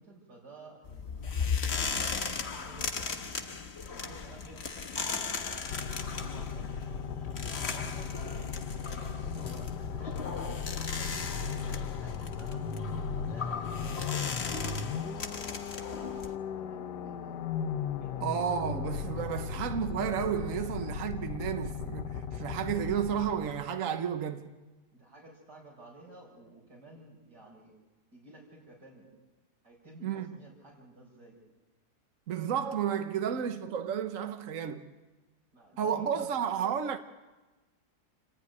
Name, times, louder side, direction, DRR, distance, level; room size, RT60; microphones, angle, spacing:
voice 1, 0.0-3.4 3.9-5.4 5.9-11.2 11.7-14.4 14.9-17.5 18.0-18.3 24.9-27.7 28.1-29.1 29.6-31.4 35.5-36.3, right 2 dB, 90° right, 7.0 m, -53 dB
sound 1, 0.8-16.3, left 5 dB, 45° left, 1.5 m, -37 dB
sound 2, 5.7-23.7, left 6 dB, 80° left, 1.5 m, -37 dB
voice 2, 18.2-24.6 30.0-30.4 32.3-34.8 35.8-37.0, right 8 dB, 55° right, 1.4 m, -32 dB
28.5 x 12.5 x 9.7 m
omnidirectional pair, 1.7 m